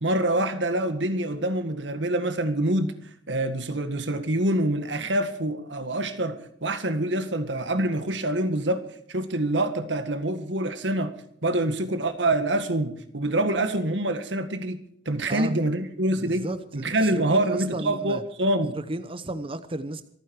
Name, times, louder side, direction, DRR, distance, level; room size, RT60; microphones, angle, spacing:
voice 1, 0.0-2.9 3.3-8.8 9.1-11.1 11.4-14.8 15.1-16.5 16.7-18.8, right 1 dB, 90° right, 1.8 m, -26 dB
voice 2, 16.2-18.2 18.9-20.0, right 2 dB, 30° right, 0.9 m, -33 dB
26.5 x 9.5 x 4.8 m
head